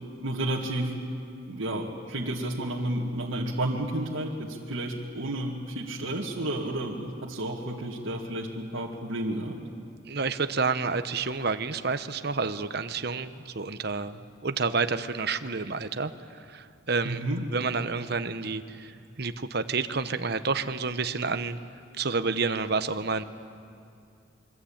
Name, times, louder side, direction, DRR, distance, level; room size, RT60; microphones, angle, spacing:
voice 1, 0.2-1.0 1.5-9.6 17.0-17.4, right 1 dB, 80° right, -3 dB, 2.1 m, -31 dB
voice 2, 10.1-16.1 16.5-17.2 17.5-18.9 19.2-21.6 21.9-23.3, right 4 dB, 50° right, 10 dB, 1.0 m, -29 dB
26.5 x 23.5 x 8.8 m, 2.4 s
head